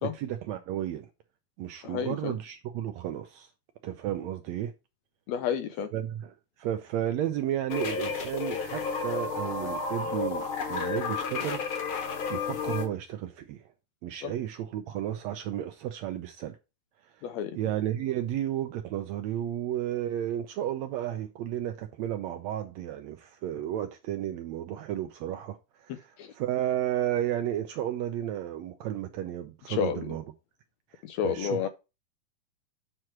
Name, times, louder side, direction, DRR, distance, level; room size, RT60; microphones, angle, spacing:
voice 1, 0.0-1.1 1.6-3.5 3.8-4.7 5.9-11.9 12.3-13.6 14.0-16.6 17.5-30.2 30.9-31.7, right 11 dB, 75° right, 1.6 m, -33 dB
voice 2, 1.8-2.3 5.3-5.9 14.2-14.3 17.2-17.6 26.2-26.3 29.7-30.1 31.0-31.7, left 8 dB, 80° left, 1.6 m, -30 dB
sound 1, 7.7-12.9, left 5 dB, 50° left, 1.8 m, -32 dB
7.7 x 3.2 x 5.7 m
omnidirectional pair, 3.6 m